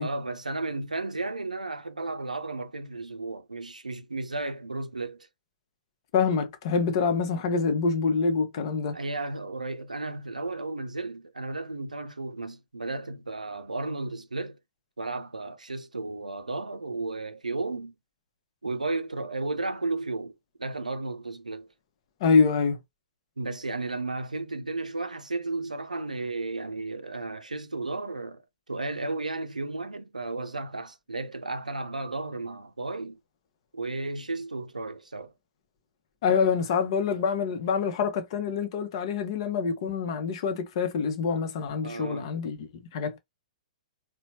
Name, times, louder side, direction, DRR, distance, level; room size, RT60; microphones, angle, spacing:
voice 1, 0.0-5.3 8.9-14.6 15.0-17.9 18.6-20.3 20.6-21.7 23.4-28.4 28.7-33.2 33.7-35.3 41.8-42.3, right 2 dB, 80° right, 0.5 m, -33 dB
voice 2, 6.1-9.0 22.2-22.8 36.2-43.2, left 5 dB, 45° left, 0.8 m, -26 dB
4.1 x 2.2 x 2.7 m
figure-of-eight pair, 115°, 4 cm